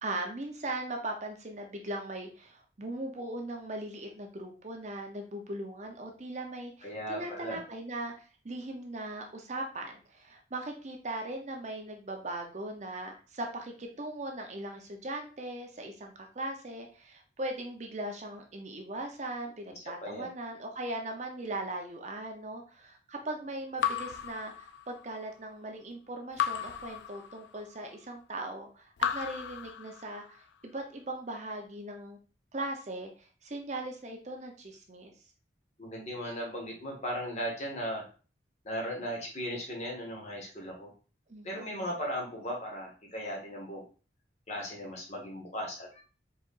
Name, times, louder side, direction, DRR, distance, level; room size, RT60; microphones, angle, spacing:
voice 1, 0.0-8.1 8.4-32.2 32.5-33.1 33.4-35.1 41.3-41.9, right 1 dB, 40° right, 3 dB, 0.7 m, -39 dB
voice 2, 6.8-7.6 19.7-20.3 35.8-38.1 38.6-40.9 41.4-43.8 44.5-46.0, equal, 35° left, -1 dB, 1.4 m, -37 dB
Raindrop / Drip, 23.8-25.2 26.4-27.8 29.0-30.4, left 8 dB, 70° left, 0.3 m, -34 dB
4.6 x 4.2 x 2.5 m, 0.37 s
head